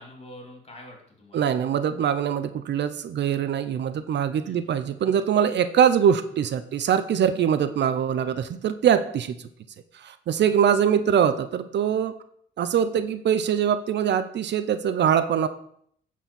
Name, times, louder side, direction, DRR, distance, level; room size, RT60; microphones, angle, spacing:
voice 1, 0.0-1.5 4.4-4.8 10.5-10.9, left 1 dB, 30° left, 1 dB, 3.4 m, -46 dB
voice 2, 1.3-9.4 9.9-12.2 12.6-15.5, right 8 dB, 60° right, 12 dB, 0.7 m, -23 dB
9.9 x 4.7 x 7.1 m, 0.66 s
cardioid pair, 90°, 20 cm